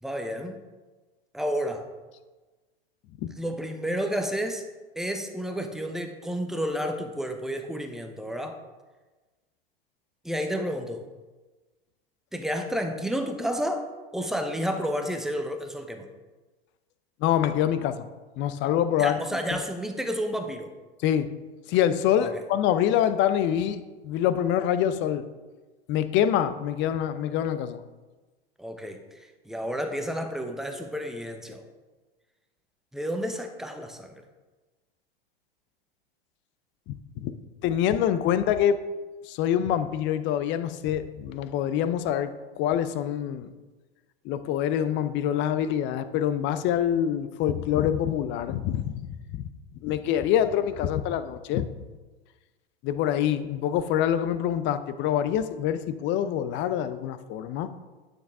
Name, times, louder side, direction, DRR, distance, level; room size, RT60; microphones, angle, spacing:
voice 1, 0.0-0.6 1.3-1.9 3.4-4.6 5.0-8.6 10.2-11.1 12.3-13.9 14.1-16.1 19.0-20.7 22.2-22.4 28.6-31.6 32.9-34.2, equal, ahead, 5 dB, 0.9 m, -31 dB
voice 2, 17.2-18.1 18.4-19.2 19.5-19.6 21.0-21.4 21.7-25.3 25.9-27.8 36.9-37.3 37.6-38.8 39.2-42.3 42.6-43.5 44.2-49.5 49.8-51.7 52.8-57.7, left 10 dB, 40° left, 12 dB, 0.6 m, -25 dB
9.5 x 6.7 x 3.5 m, 1.2 s
hypercardioid pair, 90°, 30 cm